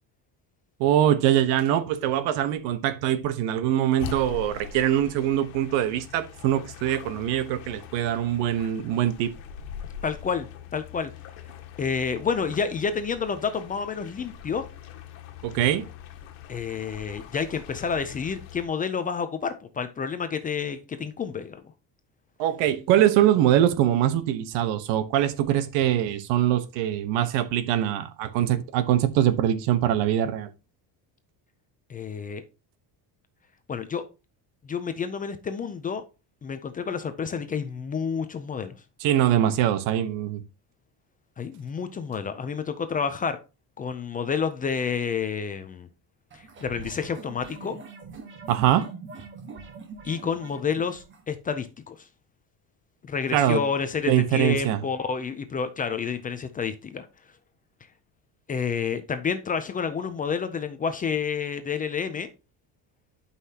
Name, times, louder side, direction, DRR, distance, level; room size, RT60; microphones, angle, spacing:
voice 1, 0.8-9.3 15.4-15.9 22.4-30.5 39.0-40.4 48.5-48.9 53.3-53.6 54.1-54.8, right 11 dB, 80° right, 1.1 m, -23 dB
sound 1, 4.0-18.7, left 9 dB, 85° left, 1.6 m, -43 dB
voice 2, 10.0-10.5 10.7-11.1 11.8-14.6 16.5-21.6 31.9-32.4 33.7-34.0 34.6-36.0 36.4-38.7 41.4-43.4 43.8-45.9 46.3-47.8 50.0-52.1 53.0-57.1 58.5-62.3, left 6 dB, 20° left, 0.4 m, -29 dB
sound 2, 46.3-51.2, right 4 dB, 25° right, 1.3 m, -43 dB
11.5 x 5.6 x 2.8 m
cardioid pair, 170°, 44 cm